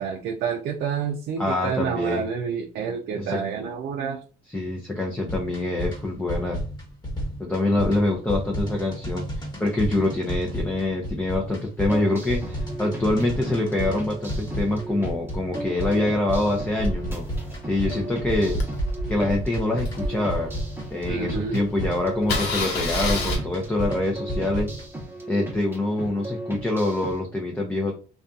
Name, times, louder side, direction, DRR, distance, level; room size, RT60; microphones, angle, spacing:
voice 1, 0.0-4.2 21.1-21.6, right 6 dB, 70° right, 2 dB, 0.5 m, -28 dB
voice 2, 1.4-2.2 3.2-3.4 4.5-6.6 7.4-17.3 17.6-18.6 19.1-20.5 20.9-24.7 25.3-27.9, left 2 dB, 10° left, 0 dB, 0.6 m, -25 dB
sound 1, 5.2-24.9, equal, 25° left, 1.3 m, -32 dB
sound 2, 11.9-27.2, right 1 dB, 15° right, 0.9 m, -37 dB
Engine starting, 16.8-21.0 21.5-21.6 21.8-21.9 22.2-23.4, left 2 dB, 80° left, 0.8 m, -29 dB
2.6 x 2.3 x 2.4 m, 0.36 s
cardioid pair, 110°, 17 cm